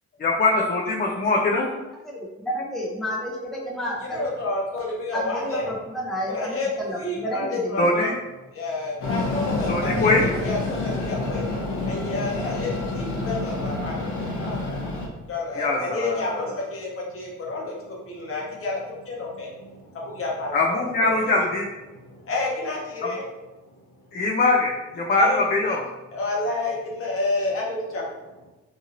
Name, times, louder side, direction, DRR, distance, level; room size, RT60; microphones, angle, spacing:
voice 1, 0.2-1.7 7.8-8.1 9.7-10.3 15.6-16.5 20.5-21.6 24.1-25.8, left 2 dB, 30° left, 0 dB, 0.4 m, -22 dB
voice 2, 2.0-4.2 5.1-8.1, equal, ahead, -4 dB, 0.7 m, -31 dB
voice 3, 4.1-5.7 6.3-8.1 8.5-11.4 11.8-14.8 15.3-21.3 21.9-23.2 25.1-25.4 26.1-28.0, left 2 dB, 45° left, -3 dB, 0.9 m, -30 dB
Train, 9.0-15.1, left 3 dB, 85° left, 0.7 m, -28 dB
2.7 x 2.7 x 2.5 m, 1.1 s
cardioid pair, 90°, 30 cm